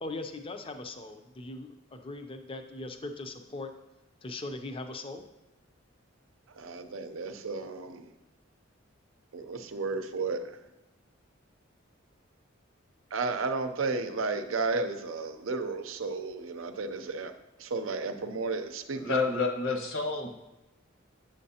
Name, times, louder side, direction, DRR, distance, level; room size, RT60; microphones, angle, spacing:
voice 1, 0.0-3.7 4.2-5.2, left 2 dB, 25° left, 6 dB, 0.5 m, -40 dB
voice 2, 6.6-8.1 9.3-10.6 13.1-17.3 17.6-19.2, right 3 dB, 80° right, 8 dB, 0.6 m, -33 dB
voice 3, 18.9-20.3, left 4 dB, 70° left, 1 dB, 1.3 m, -29 dB
8.4 x 6.4 x 2.8 m, 1.0 s
head